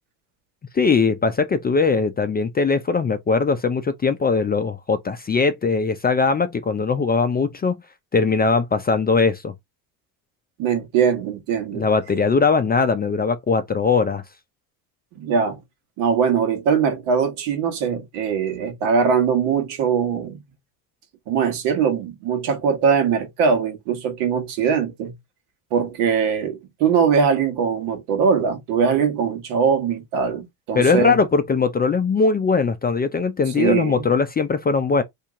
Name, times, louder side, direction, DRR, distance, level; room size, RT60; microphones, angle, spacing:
voice 1, 0.7-7.8 8.1-9.5 11.7-14.2 30.7-35.0, left 4 dB, 20° left, 0.4 m, -20 dB
voice 2, 10.6-11.8 15.2-15.6 16.0-20.4 21.3-25.1 25.7-31.2 33.6-34.1, right 6 dB, 75° right, 1.4 m, -21 dB
2.9 x 2.8 x 3.6 m
supercardioid pair, 75°, 49 cm